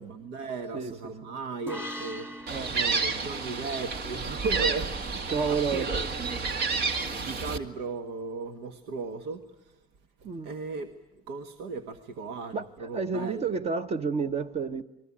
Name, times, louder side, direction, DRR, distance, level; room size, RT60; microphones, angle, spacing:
voice 1, 0.0-6.0 7.2-9.9 10.2-10.9 11.3-13.5, right 4 dB, 85° right, 1.7 m, -37 dB
sound 1, 1.7-5.1, equal, 15° right, 2.0 m, -43 dB
Gull seagull, 2.5-7.6, right 4 dB, 65° right, 2.2 m, -30 dB
voice 2, 5.3-5.9 10.2-10.5 12.5-14.8, right 5 dB, 40° right, 1.1 m, -30 dB
29.0 x 21.0 x 8.6 m
cardioid pair, 110°, 17 cm